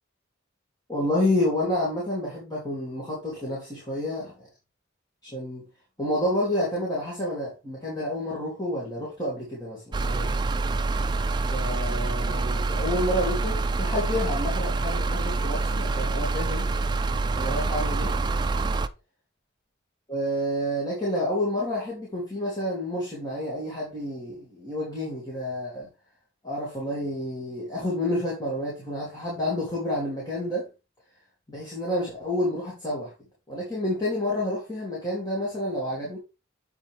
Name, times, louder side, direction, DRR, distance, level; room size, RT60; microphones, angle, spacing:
voice 1, 0.9-4.5 5.2-5.6 6.0-10.3 11.5-16.7 17.3-18.1 20.1-25.9 26.4-30.7 31.5-33.1 33.5-36.2, left 1 dB, 20° left, 3.0 m, -29 dB
sound 1, 9.9-18.9, right 3 dB, 20° right, 0.4 m, -26 dB
8.1 x 5.6 x 3.5 m
head